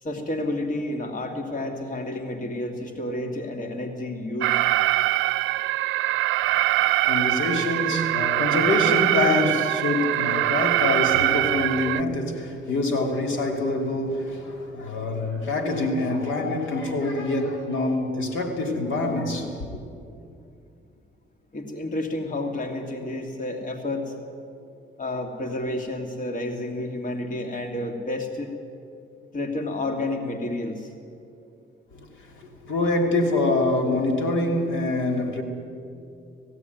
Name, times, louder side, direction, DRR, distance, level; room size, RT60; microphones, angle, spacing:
voice 1, 0.0-4.7 21.5-24.1 25.0-28.5 29.3-30.9, left 1 dB, 40° left, 2.5 m, -30 dB
Alarm, 4.4-12.0, right 16 dB, 80° right, 0.4 m, -23 dB
voice 2, 6.8-19.8 31.9-32.1 32.4-35.4, left 2 dB, 75° left, 2.9 m, -25 dB
18.5 x 16.5 x 9.3 m
cardioid pair, 90°, 20 cm